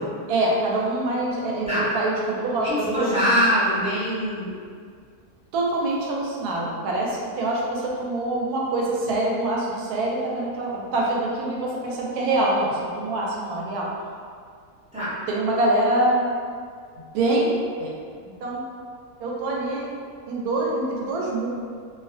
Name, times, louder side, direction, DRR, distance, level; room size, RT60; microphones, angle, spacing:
voice 1, 0.3-3.1 5.5-13.9 15.3-16.3 17.1-17.5 17.8-17.9 18.4-18.6 19.2-19.9 20.3-21.5, right 2 dB, 90° right, -3 dB, 1.1 m, -25 dB
voice 2, 2.6-4.5 14.9-15.1, equal, 10° right, -12 dB, 0.3 m, -23 dB
2.5 x 2.1 x 2.5 m, 2.1 s
omnidirectional pair, 1.6 m